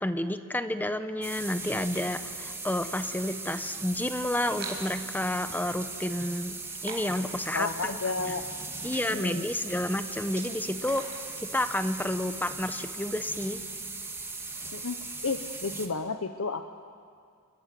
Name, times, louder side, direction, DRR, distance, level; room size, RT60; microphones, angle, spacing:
voice 1, 0.0-6.6 6.8-7.9 8.3-8.4 8.8-11.0 11.4-13.6, left 1 dB, 10° left, 10 dB, 0.8 m, -30 dB
sound 1, 1.2-15.9, right 3 dB, 10° right, 1.7 m, -39 dB
sound 2, 4.4-11.7, right 4 dB, 55° right, 5.0 m, -47 dB
voice 2, 7.5-8.4 9.0-9.5 14.7-16.7, left 4 dB, 85° left, 7 dB, 1.0 m, -32 dB
28.5 x 21.5 x 7.7 m, 2.2 s
head